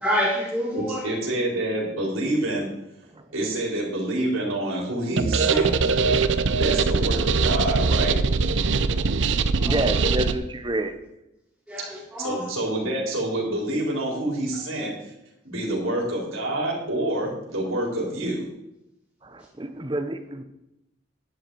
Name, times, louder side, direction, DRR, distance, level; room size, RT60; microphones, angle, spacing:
voice 1, 0.0-1.1 5.5-5.7 9.6-10.1 11.7-12.5 14.8-14.9, equal, ahead, -8 dB, 2.4 m, -28 dB
voice 2, 0.7-2.7 3.3-5.7 6.5-8.1 12.2-14.9 15.4-18.4, right 1 dB, 90° right, -2 dB, 4.0 m, -27 dB
sound 1, 5.2-10.3, right 4 dB, 65° right, 0.6 m, -22 dB
voice 3, 9.6-10.9 19.2-20.4, right 1 dB, 25° right, 8 dB, 0.9 m, -29 dB
11.5 x 9.6 x 4.7 m, 0.87 s
head